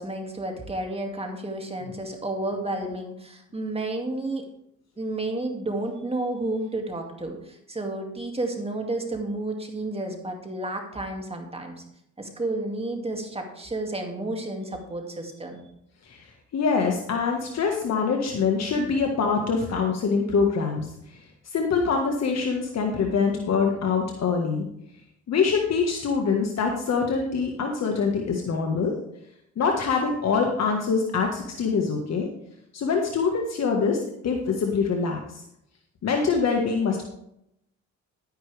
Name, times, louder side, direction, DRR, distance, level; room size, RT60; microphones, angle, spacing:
voice 1, 0.0-4.4 5.0-11.7 12.2-15.6, right 2 dB, 20° right, 2 dB, 2.4 m, -31 dB
voice 2, 16.0-24.7 25.3-28.9 29.5-32.3 32.7-35.4 36.0-37.1, left 5 dB, 60° left, 2 dB, 1.7 m, -24 dB
11.5 x 10.0 x 3.5 m, 0.76 s
cardioid pair, 90°, 30 cm